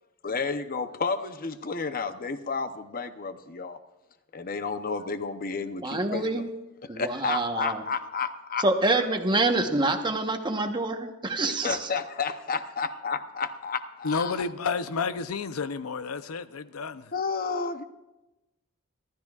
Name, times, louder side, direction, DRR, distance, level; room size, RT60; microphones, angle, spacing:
voice 1, 0.2-3.8 4.3-6.4 6.9-8.6 11.6-14.4 17.1-17.8, left 4 dB, 45° left, 0.8 m, -31 dB
voice 2, 5.8-6.4 6.9-7.8 8.6-11.9, right 2 dB, 20° right, 1.1 m, -26 dB
voice 3, 14.0-17.1, left 5 dB, 85° left, 0.7 m, -31 dB
25.5 x 13.0 x 2.4 m
head